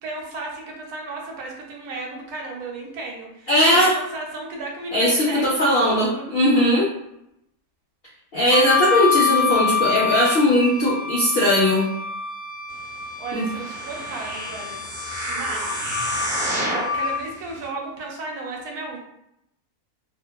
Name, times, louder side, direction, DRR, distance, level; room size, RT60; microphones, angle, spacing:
voice 1, 0.0-6.3 13.2-14.8 15.2-15.8 16.7-19.0, right 3 dB, 75° right, 0 dB, 1.1 m, -34 dB
voice 2, 3.5-4.0 4.9-6.9 8.3-11.9 13.3-13.5, left 1 dB, 85° left, -6 dB, 0.5 m, -19 dB
Wind instrument woodwind instrument, 8.5-17.2, left 6 dB, 20° left, 0.9 m, -27 dB
sound 1, 13.4-17.0 17.6-17.7, right 1 dB, 45° right, 0.9 m, -29 dB
2.7 x 2.1 x 2.2 m, 0.81 s
omnidirectional pair, 1.6 m